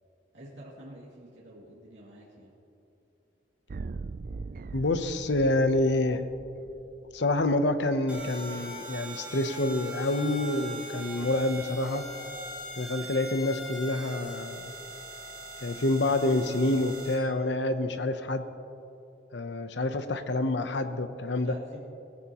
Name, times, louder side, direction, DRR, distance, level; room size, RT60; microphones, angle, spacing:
voice 1, 0.3-2.5 19.7-19.9 21.3-21.8, right 1 dB, 90° right, -7 dB, 2.5 m, -48 dB
sound 1, 3.7-7.7, right 4 dB, 50° right, 0.4 m, -41 dB
voice 2, 4.7-6.2 7.1-12.1 12.8-14.7 15.6-18.5 19.3-21.5, left 2 dB, 75° left, 9 dB, 0.8 m, -27 dB
sound 2, 8.1-17.2, right 1 dB, 10° right, 2.9 m, -41 dB
19.5 x 15.5 x 3.0 m, 2.8 s
head